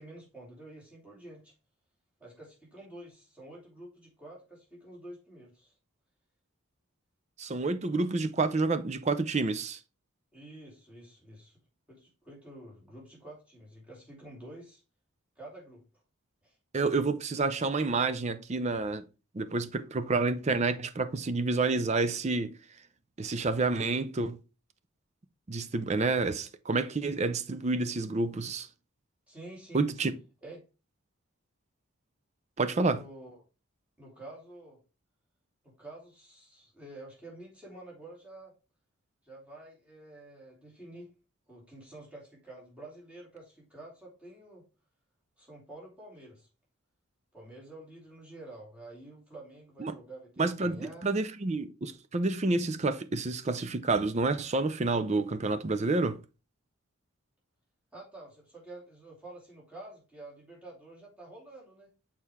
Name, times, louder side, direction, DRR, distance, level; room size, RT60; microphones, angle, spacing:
voice 1, 0.0-1.5 2.2-5.7 10.3-11.6 11.9-14.8 15.4-15.8 16.4-16.6 29.3-29.9 30.4-30.6 32.8-33.4 34.0-34.8 35.6-38.5 39.2-41.1 41.5-44.6 45.4-46.5 47.3-51.1 57.9-61.9, right 1 dB, 5° right, 2.7 m, -49 dB
voice 2, 7.4-9.8 16.7-19.0 19.3-22.6 23.2-24.4 25.5-28.7 29.7-30.1 32.6-33.0 49.8-49.9 50.4-50.8 51.0-56.2, right 3 dB, 30° right, 0.5 m, -29 dB
6.5 x 4.4 x 3.5 m
head